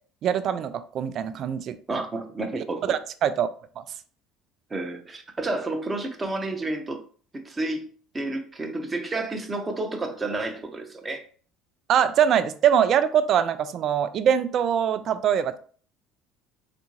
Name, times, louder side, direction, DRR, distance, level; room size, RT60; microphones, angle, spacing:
voice 1, 0.2-1.7 2.6-2.7 2.9-3.5 3.8-3.9 11.9-15.6, right 9 dB, 45° right, 0.3 m, -23 dB
voice 2, 1.9-3.0 4.7-7.0 7.3-7.9 8.1-11.3, right 2 dB, 20° right, 0.7 m, -30 dB
4.3 x 2.5 x 2.8 m
figure-of-eight pair, 60°, 0 cm